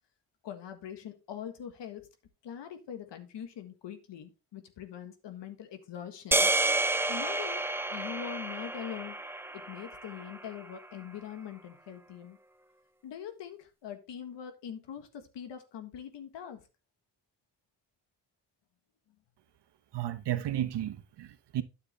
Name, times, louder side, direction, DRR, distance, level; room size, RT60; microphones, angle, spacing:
voice 1, 0.4-2.1 2.4-6.5 7.1-7.6 7.9-9.2 9.5-12.4 13.0-16.6, left 9 dB, 80° left, 1.6 m, -43 dB
sound 1, 6.3-10.7, right 2 dB, 5° right, 0.5 m, -30 dB
voice 2, 19.9-21.6, right 12 dB, 75° right, 1.0 m, -33 dB
9.6 x 6.8 x 3.3 m
cardioid pair, 75°, 42 cm